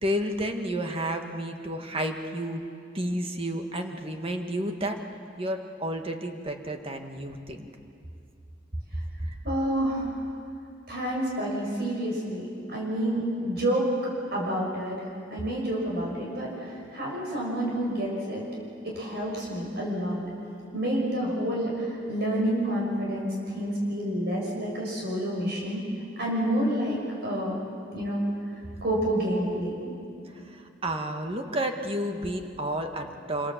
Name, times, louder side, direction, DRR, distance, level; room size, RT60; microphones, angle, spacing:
voice 1, 0.0-2.6 2.9-5.0 5.4-7.7 9.2-9.4 30.3-33.5, right 1 dB, 30° right, 4 dB, 1.8 m, -31 dB
voice 2, 9.4-10.1 10.9-13.9 14.3-18.4 18.8-20.2 20.7-25.8 26.2-27.6 27.9-28.2 28.8-29.9, right 1 dB, 60° right, -3 dB, 6.1 m, -29 dB
26.5 x 26.0 x 7.5 m, 2.5 s
head